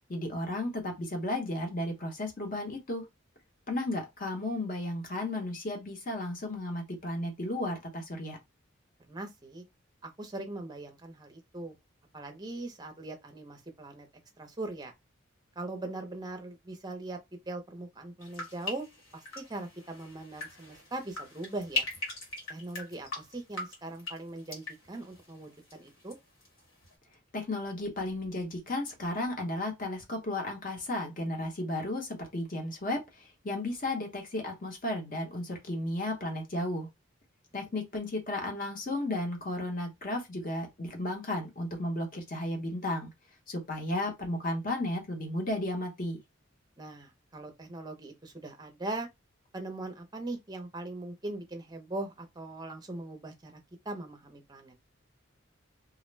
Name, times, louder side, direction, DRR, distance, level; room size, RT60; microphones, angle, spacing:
voice 1, 0.1-3.1 3.7-8.4 27.3-36.9 37.5-43.1 43.5-46.2, left 1 dB, 40° left, 0.8 m, -34 dB
voice 2, 9.1-9.6 10.0-11.8 12.1-14.1 14.4-14.9 15.6-17.2 17.5-18.9 19.1-21.9 22.5-26.2 46.8-49.1 49.5-53.6 53.9-54.7, right 2 dB, 20° right, 0.5 m, -40 dB
sound 1, 18.2-26.1 26.4-26.9, left 2 dB, 80° left, 1.5 m, -40 dB
2.4 x 2.1 x 3.1 m
head